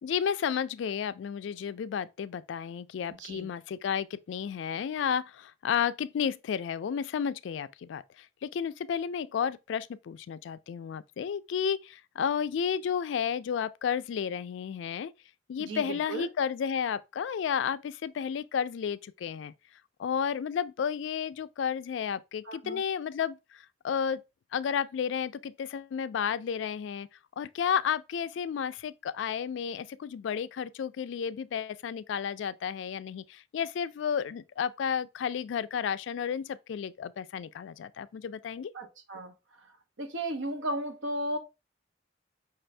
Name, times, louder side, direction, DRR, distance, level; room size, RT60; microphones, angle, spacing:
voice 1, 0.0-15.1 15.5-19.5 20.0-24.2 24.5-27.1 27.4-38.7, left 7 dB, 75° left, 0.3 m, -32 dB
voice 2, 15.6-16.3 22.5-22.8 38.7-39.3 40.0-41.4, right 1 dB, 85° right, 0.8 m, -35 dB
5.3 x 2.6 x 3.2 m
head